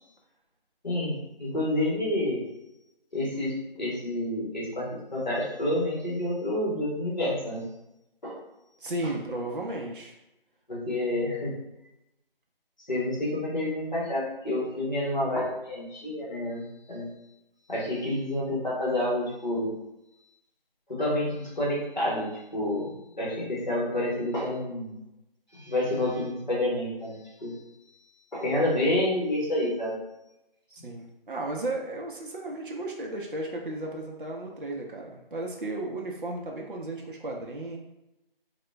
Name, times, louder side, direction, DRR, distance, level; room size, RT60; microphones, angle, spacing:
voice 1, 0.8-2.4 3.1-7.6 8.2-8.4 10.7-11.5 12.9-17.1 17.7-19.7 20.9-25.0 25.5-27.5 28.3-29.9 30.8-30.9, left 1 dB, 50° left, -5 dB, 1.2 m, -29 dB
voice 2, 8.8-10.1 30.7-37.8, right 2 dB, 60° right, 0 dB, 0.6 m, -34 dB
2.9 x 2.2 x 3.2 m, 0.92 s
figure-of-eight pair, 180°, 29 cm